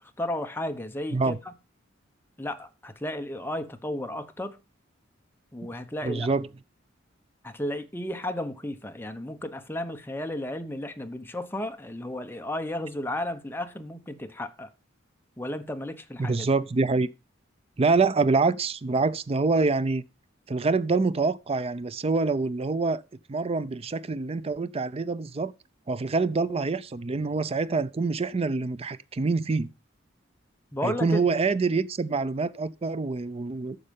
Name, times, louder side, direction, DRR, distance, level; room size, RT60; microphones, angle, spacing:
voice 1, 0.0-1.4 2.4-4.6 5.5-6.3 7.4-14.7 15.4-16.5 30.7-31.3, left 1 dB, 10° left, 0.9 m, -33 dB
voice 2, 6.0-6.5 16.2-17.1 17.8-20.0 20.5-23.0 23.3-25.5 25.9-29.7 30.8-33.8, right 3 dB, 30° right, 0.4 m, -26 dB
9.8 x 6.6 x 5.2 m
head